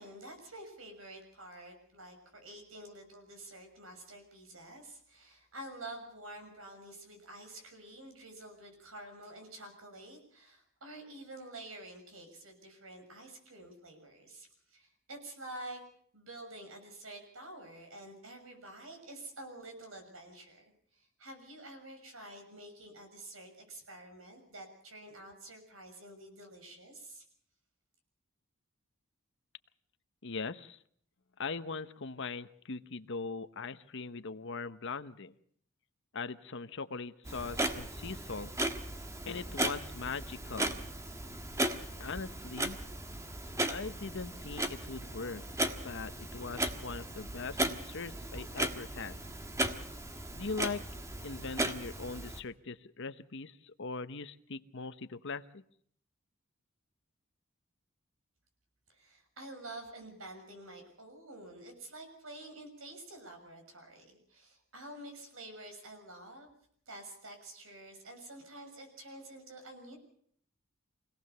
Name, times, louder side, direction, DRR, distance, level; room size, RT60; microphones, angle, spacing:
voice 1, 0.0-15.8 16.1-27.2 58.9-66.5 66.9-70.0, right 1 dB, 70° right, 5 dB, 6.4 m, -49 dB
voice 2, 30.2-30.8 31.4-35.3 36.1-38.5 39.2-40.8 42.0-42.8 43.6-45.4 45.8-49.2 50.3-50.8 51.2-55.6, left 4 dB, 60° left, 11 dB, 1.0 m, -40 dB
Clock, 37.3-52.4, right 1 dB, 15° right, 1.4 m, -36 dB
25.5 x 17.5 x 6.8 m, 0.64 s
head